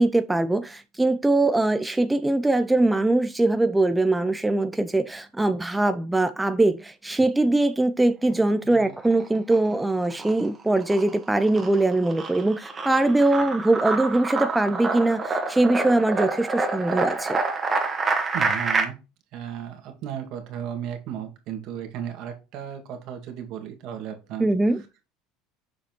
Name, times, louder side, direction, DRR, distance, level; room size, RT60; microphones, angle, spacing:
voice 1, 0.0-17.4 24.4-24.8, right 2 dB, 10° right, 0.5 m, -22 dB
voice 2, 8.7-9.0 18.3-19.0 19.3-24.5, right 9 dB, 60° right, 2.0 m, -35 dB
sound 1, 8.9-9.7 10.1-18.8, right 3 dB, 25° right, 1.7 m, -27 dB
6.8 x 4.9 x 3.0 m
supercardioid pair, 105°, 0 cm